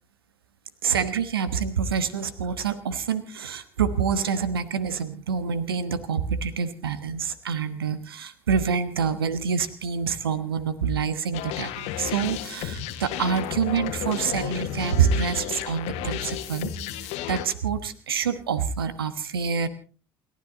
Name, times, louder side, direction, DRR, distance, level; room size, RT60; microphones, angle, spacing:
voice 1, 0.8-16.7 17.3-19.7, right 6 dB, 85° right, 15 dB, 1.2 m, -26 dB
sound 1, 11.3-17.5, left 11 dB, 65° left, 1.5 m, -32 dB
29.0 x 12.5 x 3.9 m, 0.36 s
figure-of-eight pair, 55°, 12 cm